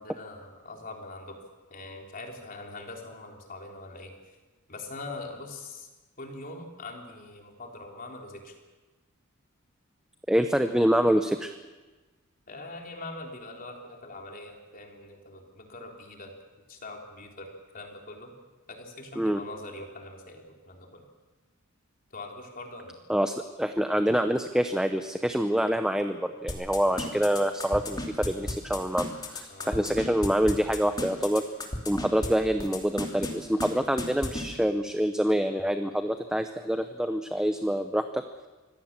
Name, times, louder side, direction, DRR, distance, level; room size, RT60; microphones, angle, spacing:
voice 1, 0.0-1.4 1.7-4.4 4.7-5.9 6.2-8.6 12.5-16.4 16.7-18.3 18.7-21.0 22.1-23.0 29.5-29.9, left 2 dB, 40° left, 1 dB, 3.7 m, -42 dB
voice 2, 10.3-11.5 19.2-19.4 23.1-31.4 31.9-38.2, equal, 5° right, 7 dB, 0.7 m, -26 dB
sound 1, 26.5-32.3 32.6-33.3 33.6-33.7 34.0-34.4, left 2 dB, 20° left, 2.9 m, -32 dB
25.0 x 17.0 x 7.5 m, 1.2 s
head